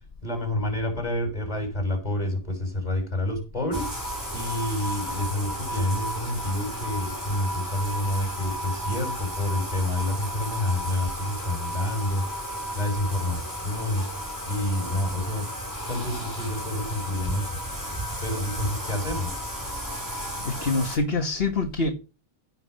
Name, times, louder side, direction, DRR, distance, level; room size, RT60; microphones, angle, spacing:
voice 1, 0.2-3.9 4.3-12.2 12.7-14.1 14.5-15.5 15.9-17.6 18.2-19.3, left 1 dB, 40° left, 6.1 m, -28 dB
Bathtub (filling or washing), 3.7-21.0, equal, 20° right, 4.5 m, -33 dB
voice 2, 20.4-21.9, left 3 dB, 65° left, 1.7 m, -25 dB
16.0 x 6.0 x 6.4 m
omnidirectional pair, 1.1 m